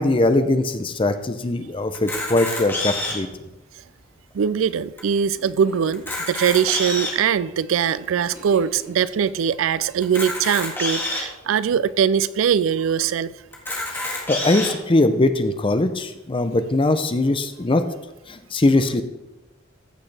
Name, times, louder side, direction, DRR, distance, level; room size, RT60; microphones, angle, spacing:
voice 1, 0.0-3.3 14.0-17.9 18.3-19.0, left 2 dB, 25° left, 10 dB, 0.6 m, -21 dB
Camera, 1.9-3.3 4.0-4.1 4.3-4.4 5.0-5.1 5.9-7.3 7.9-8.0 10.0-11.2 12.0-12.1 12.3-12.4 13.5-14.7, left 2 dB, 10° left, 1.8 m, -27 dB
voice 2, 4.3-13.3, right 7 dB, 80° right, 17 dB, 0.4 m, -21 dB
sound 1, 5.0-5.1 5.3-6.0 8.3-9.2, left 1 dB, 15° right, 2.4 m, -43 dB
14.5 x 6.4 x 3.3 m, 1.0 s
head